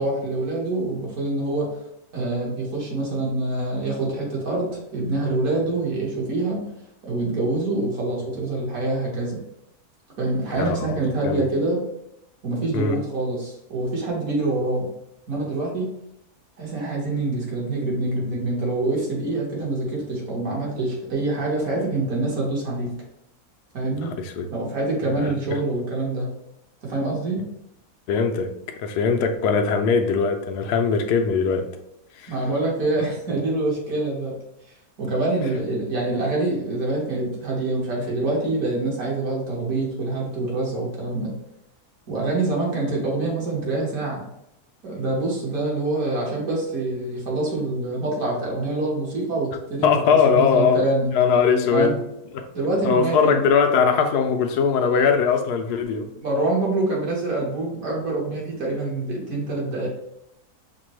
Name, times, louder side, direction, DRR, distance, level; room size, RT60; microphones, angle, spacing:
voice 1, 0.0-1.8 2.1-6.6 7.0-9.4 10.2-11.8 12.4-14.9 15.3-15.9 16.6-22.9 23.7-24.1 24.5-26.3 26.8-27.4 32.3-34.4 35.0-41.3 42.1-44.2 44.8-51.1 51.7-51.9 52.5-53.4 56.2-59.9, right 2 dB, 60° right, -3 dB, 1.7 m, -25 dB
voice 2, 10.6-11.0 11.2-11.4 12.7-13.0 24.0-24.5 25.2-25.3 28.1-28.5 28.8-31.7 32.2-32.3 49.8-50.8 51.1-52.0 52.3-52.5 52.8-56.1, left 6 dB, 85° left, 5 dB, 1.1 m, -20 dB
5.8 x 2.2 x 3.0 m, 0.81 s
omnidirectional pair, 1.7 m